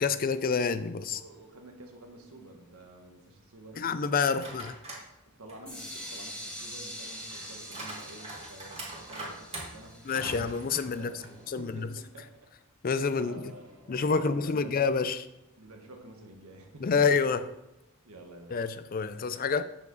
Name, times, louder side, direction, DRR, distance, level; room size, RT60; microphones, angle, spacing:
voice 1, 0.0-1.2 3.8-4.7 10.1-11.1 11.5-11.9 12.8-13.4 13.9-15.3 16.8-17.4 18.5-19.6, left 5 dB, 40° left, 0.4 m, -28 dB
voice 2, 1.1-3.8 4.3-4.5 5.3-10.0 10.9-12.5 12.9-13.7 14.2-14.8 15.6-17.1 18.0-18.7, right 2 dB, 80° right, 1.5 m, -49 dB
sound 1, 4.2-5.1 5.5-11.6 12.0-12.1 13.0-14.5, right 2 dB, 25° right, 2.1 m, -44 dB
sound 2, 5.7-11.5, equal, 5° left, 1.7 m, -44 dB
8.4 x 7.0 x 3.9 m
head